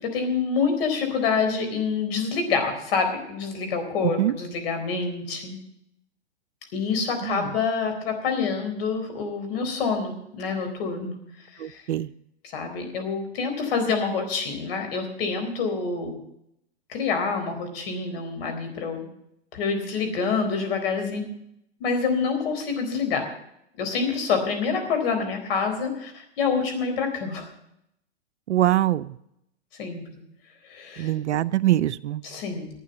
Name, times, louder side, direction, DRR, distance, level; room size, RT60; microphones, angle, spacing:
voice 1, 0.0-5.6 6.7-11.2 11.6-11.8 12.5-16.2 16.9-19.1 19.5-21.3 21.8-23.3 23.8-27.5 29.8-30.1 30.7-31.1 32.2-32.7, left 5 dB, 55° left, 5 dB, 4.0 m, -27 dB
voice 2, 4.0-4.3 7.2-7.4 11.6-12.1 28.5-29.1 31.0-32.2, right 13 dB, 75° right, 16 dB, 0.6 m, -23 dB
12.0 x 8.8 x 8.0 m, 0.78 s
hypercardioid pair, 135°, 35 cm